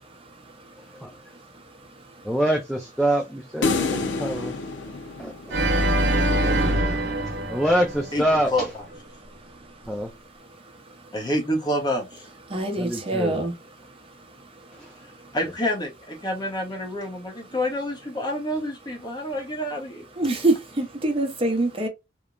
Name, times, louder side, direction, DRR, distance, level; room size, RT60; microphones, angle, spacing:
voice 1, 2.2-4.5 5.2-5.6 5.9-8.7 9.9-10.1 12.8-13.4 14.8-14.9, right 1 dB, ahead, 0.4 m, -26 dB
sound 1, 3.6-6.0, left 3 dB, 80° left, 0.5 m, -27 dB
Organ, 5.5-8.6, right 1 dB, 75° right, 0.8 m, -23 dB
voice 2, 11.1-12.1 15.3-20.0, left 1 dB, 25° left, 0.8 m, -27 dB
voice 3, 12.5-13.5 20.2-21.9, right 2 dB, 30° right, 0.7 m, -24 dB
3.0 x 2.0 x 2.3 m
head